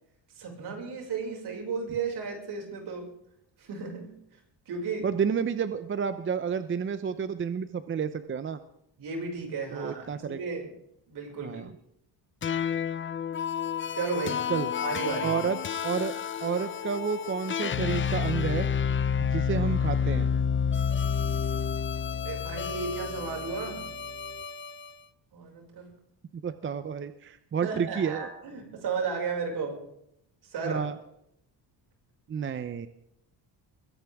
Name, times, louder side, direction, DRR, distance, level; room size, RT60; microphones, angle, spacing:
voice 1, 0.4-3.1 3.6-4.1 4.7-5.1 9.0-10.7 11.1-11.6 13.9-14.5 14.8-15.4 22.2-23.9 25.3-26.0 27.6-29.9 30.4-30.8, right 5 dB, 65° right, 1 dB, 6.0 m, -34 dB
voice 2, 5.0-8.6 9.7-10.4 11.4-11.7 14.5-14.7 15.2-16.1 16.4-18.7 19.2-20.3 26.4-28.3 30.6-30.9 32.3-32.9, right 6 dB, 30° right, 11 dB, 0.7 m, -30 dB
sound 1, 12.4-24.9, left 7 dB, 30° left, 0.6 m, -30 dB
21.5 x 16.5 x 3.6 m, 0.75 s
cardioid pair, 160°, 42 cm